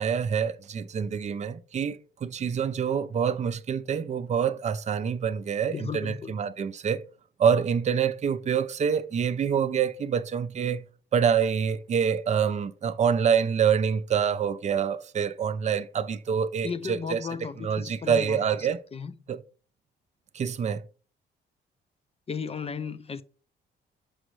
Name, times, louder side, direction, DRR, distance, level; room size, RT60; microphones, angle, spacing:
voice 1, 0.0-7.0 7.4-10.8 11.1-17.2 17.6-18.8 19.3-19.4 20.3-20.8, right 7 dB, 35° right, 0.5 m, -26 dB
voice 2, 5.7-6.4 16.6-19.1 22.3-23.2, left 6 dB, 30° left, 0.4 m, -35 dB
6.3 x 5.0 x 3.1 m
cardioid pair, 90°, 20 cm